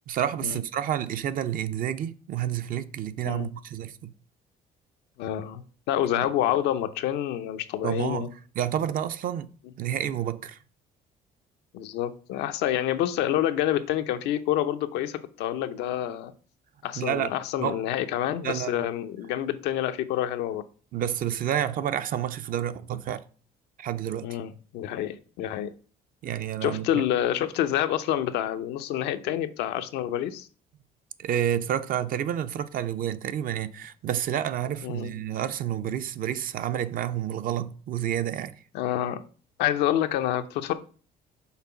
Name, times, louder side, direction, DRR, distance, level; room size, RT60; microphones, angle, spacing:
voice 1, 0.1-4.1 7.8-8.3 8.6-9.5 9.8-10.6 17.0-17.3 17.6-17.8 18.4-18.9 20.9-23.2 23.8-24.3 26.2-27.0 31.2-38.6, right 10 dB, 55° right, 0.5 m, -29 dB
voice 2, 5.2-8.3 11.7-16.3 16.8-20.6 24.2-25.7 26.6-30.5 34.8-35.1 38.7-39.2 39.6-40.7, left 11 dB, 85° left, 0.6 m, -28 dB
5.8 x 3.7 x 5.7 m
cardioid pair, 110°, 17 cm